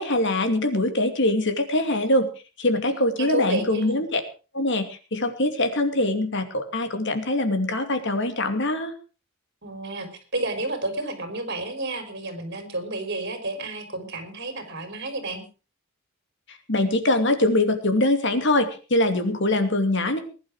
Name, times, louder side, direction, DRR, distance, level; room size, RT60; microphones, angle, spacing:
voice 1, 0.0-2.3 2.6-4.2 4.5-8.9 16.5-20.2, left 1 dB, 60° left, 8 dB, 2.7 m, -23 dB
voice 2, 2.9-4.0 9.6-15.4, right 2 dB, 55° right, 8 dB, 4.4 m, -31 dB
20.5 x 11.0 x 4.8 m, 0.35 s
head